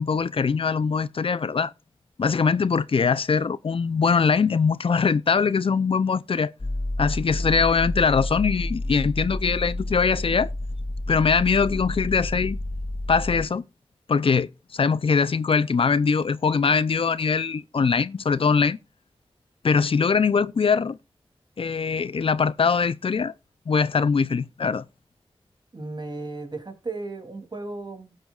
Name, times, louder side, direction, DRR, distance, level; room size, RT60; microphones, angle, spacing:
voice 1, 0.0-1.7 2.2-6.5 7.0-10.5 11.1-12.6 13.1-13.6 14.1-18.8 19.6-21.0 21.6-23.3 23.7-24.8, left 5 dB, 65° left, 0.5 m, -22 dB
sound 1, 6.6-13.5, left 1 dB, 50° left, 2.5 m, -30 dB
voice 2, 25.7-28.2, right 3 dB, 50° right, 2.9 m, -35 dB
18.0 x 7.7 x 2.4 m
wide cardioid pair, 65°, 10 cm